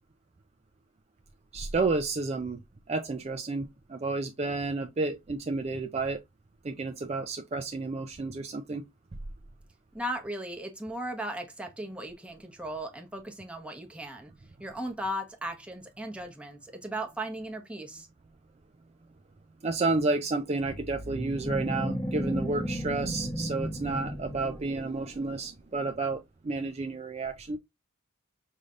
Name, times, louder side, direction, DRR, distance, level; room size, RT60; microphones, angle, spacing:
voice 1, 1.5-2.6 2.9-6.2 6.6-8.9 19.6-27.6, right 3 dB, 30° right, 0.4 m, -31 dB
voice 2, 9.9-14.3 14.6-18.1, right 1 dB, 5° right, 1.0 m, -37 dB
sound 1, 20.6-25.0, equal, 20° left, 1.0 m, -34 dB
5.4 x 3.3 x 2.4 m
head